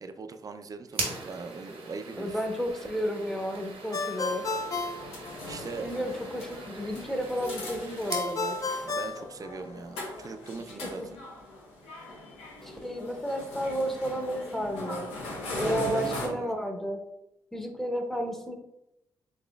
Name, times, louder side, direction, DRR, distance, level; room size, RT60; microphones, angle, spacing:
voice 1, 0.0-2.4 5.5-5.9 8.8-11.0 15.5-16.6, right 4 dB, 35° right, 8 dB, 0.4 m, -40 dB
sound 1, 0.9-8.3, right 3 dB, 70° right, 0.9 m, -40 dB
voice 2, 2.1-4.5 5.8-8.6 11.0-11.1 12.6-15.1 15.6-17.0 17.5-18.6, equal, 5° left, 4 dB, 0.7 m, -32 dB
Ringtone, 3.9-5.9 8.1-10.1, left 3 dB, 35° left, 0.4 m, -33 dB
sound 2, 4.3-16.3, left 2 dB, 90° left, 0.8 m, -40 dB
4.1 x 3.0 x 2.3 m, 0.85 s
supercardioid pair, 50°, 10 cm